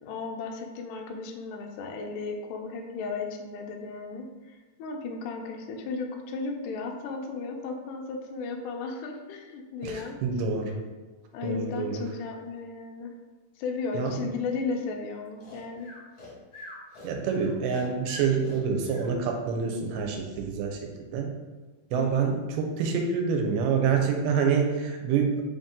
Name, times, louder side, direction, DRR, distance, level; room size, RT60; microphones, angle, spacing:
voice 1, 0.0-10.2 11.3-13.1 13.6-15.9 21.9-22.4, left 4 dB, 80° left, 2 dB, 1.8 m, -35 dB
voice 2, 9.8-10.8 11.4-12.0 14.0-14.1 17.0-21.4 21.9-25.4, right 6 dB, 85° right, 2 dB, 2.2 m, -27 dB
Breathing, 15.4-19.1, left 2 dB, 55° left, 1.1 m, -44 dB
4.9 x 2.7 x 3.6 m, 1.3 s
omnidirectional pair, 3.8 m